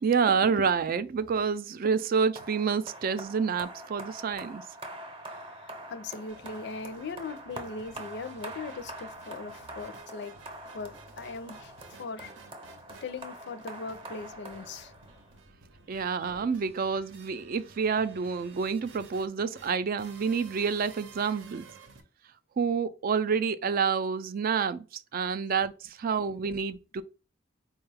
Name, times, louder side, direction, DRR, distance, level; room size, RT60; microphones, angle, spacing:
voice 1, 0.0-4.6 15.9-21.6 22.6-27.0, right 6 dB, 50° right, 0.4 m, -28 dB
sound 1, 2.4-15.4, right 1 dB, 30° right, 0.7 m, -44 dB
voice 2, 5.3-10.3 10.7-12.3 13.0-14.9 16.0-16.1, left 4 dB, 60° left, 0.5 m, -40 dB
sound 2, 6.3-22.0, right 4 dB, 70° right, 0.7 m, -53 dB
4.4 x 2.3 x 3.2 m
head